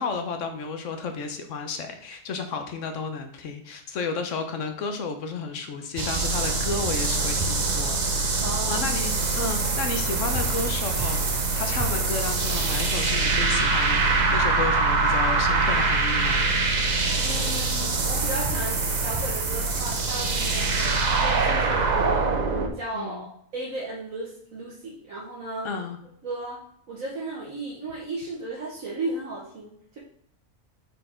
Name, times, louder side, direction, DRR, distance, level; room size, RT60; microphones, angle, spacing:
voice 1, 0.0-8.0 8.3-16.5 22.9-23.3 25.6-26.0, left 4 dB, 70° left, 6 dB, 1.1 m, -32 dB
sound 1, 6.0-22.7, right 3 dB, 40° right, 0.8 m, -24 dB
voice 2, 8.4-8.9 16.8-22.3 22.8-25.7 26.2-26.6 26.9-30.0, right 2 dB, 80° right, -5 dB, 1.6 m, -35 dB
5.2 x 4.3 x 4.4 m, 0.67 s
omnidirectional pair, 1.4 m